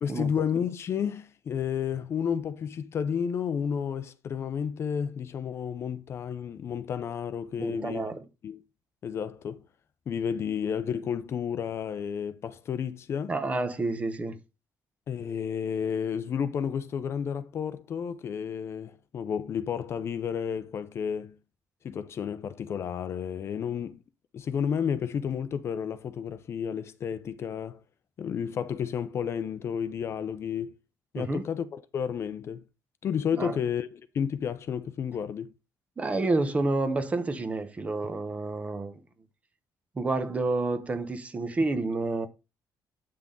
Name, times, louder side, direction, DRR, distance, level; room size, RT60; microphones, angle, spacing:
voice 1, 0.0-8.1 8.4-8.6 9.0-9.6 10.1-13.3 15.1-21.4 21.8-24.0 24.3-27.8 28.2-30.7 31.1-32.6 33.0-35.5, left 7 dB, 40° left, 0.6 m, -31 dB
voice 2, 7.6-8.2 13.3-14.4 31.2-31.4 33.3-33.6 36.0-38.9 40.0-42.3, right 2 dB, 20° right, 0.9 m, -29 dB
8.7 x 6.0 x 3.7 m
cardioid pair, 175°, 7 cm